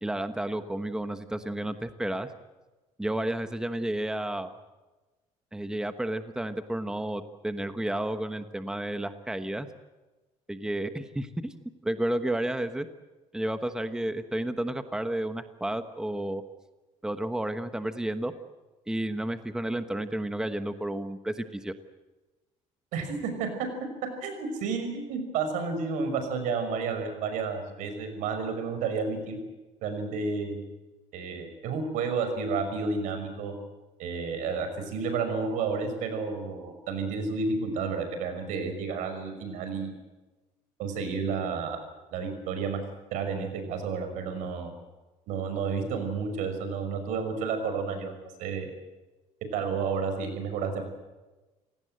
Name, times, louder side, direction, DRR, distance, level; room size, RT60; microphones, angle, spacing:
voice 1, 0.0-2.3 3.0-4.5 5.5-9.7 10.5-11.5 11.8-12.9 13.3-16.4 17.0-18.3 18.9-21.7, right 1 dB, 5° right, 9 dB, 1.2 m, -31 dB
voice 2, 22.9-23.7 24.2-29.4 29.8-30.6 31.1-33.5 34.0-39.9 40.8-41.8 42.1-42.8 43.1-44.7 45.3-48.1 48.4-48.7 49.5-50.8, right 5 dB, 85° right, 7 dB, 5.9 m, -31 dB
27.5 x 18.0 x 7.8 m, 1.2 s
cardioid pair, 125°, 13 cm